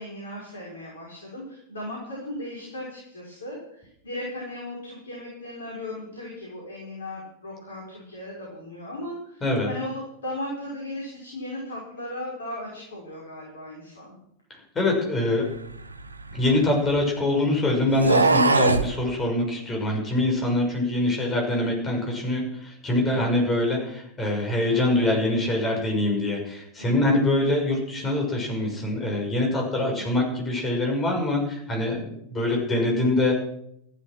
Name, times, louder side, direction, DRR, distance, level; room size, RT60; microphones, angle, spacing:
voice 1, 0.0-14.1 23.1-23.3 26.8-27.2 29.9-30.1, left 1 dB, 70° left, -3 dB, 6.1 m, -37 dB
voice 2, 14.7-15.4 16.3-33.4, left 2 dB, 20° left, 1 dB, 6.4 m, -24 dB
sound 1, 15.7-17.1 17.9-18.9, right 3 dB, 80° right, 0.9 m, -22 dB
14.5 x 13.5 x 6.3 m, 0.74 s
figure-of-eight pair, 90°, 0 cm